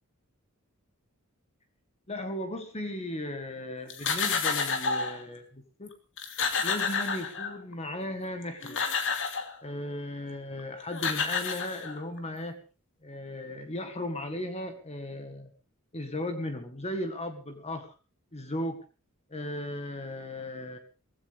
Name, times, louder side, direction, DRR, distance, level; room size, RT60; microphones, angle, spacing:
voice 1, 2.1-5.9 6.6-8.8 9.6-12.6 13.0-15.5 15.9-17.9 18.3-18.8 19.3-20.8, left 1 dB, 30° left, 7 dB, 1.8 m, -36 dB
sound 1, 3.9-5.2 5.9-6.0 6.2-7.7 8.4-9.5 10.6-10.7 10.9-12.2, left 5 dB, 60° left, 2.7 m, -30 dB
18.5 x 16.0 x 3.6 m, 0.35 s
head